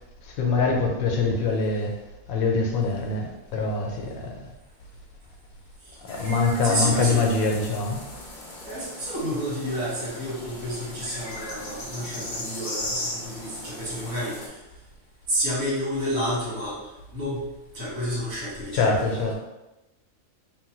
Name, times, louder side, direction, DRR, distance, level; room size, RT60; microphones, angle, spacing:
voice 1, 0.2-2.0 2.3-4.4 6.0-8.0 18.7-19.3, left 3 dB, 80° left, 1.0 m, -24 dB
sound 1, 6.1-14.5, left 1 dB, 50° left, 0.6 m, -37 dB
voice 2, 6.6-7.2 8.6-14.3 15.3-16.8 17.1-17.4 17.7-19.3, equal, 80° right, 1.7 m, -30 dB
3.2 x 2.1 x 2.9 m
omnidirectional pair, 1.4 m